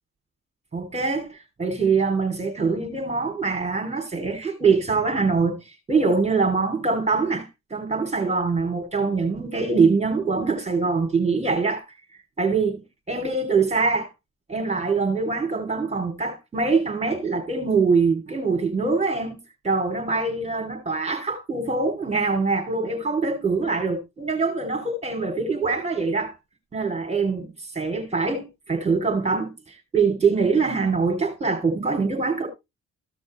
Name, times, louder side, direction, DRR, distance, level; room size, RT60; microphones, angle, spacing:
voice 1, 0.7-11.8 12.4-12.8 13.1-14.1 14.5-19.4 19.6-26.4 26.7-32.5, right 4 dB, 20° right, 2.9 m, -24 dB
14.5 x 6.3 x 3.2 m
cardioid pair, 90°, 30 cm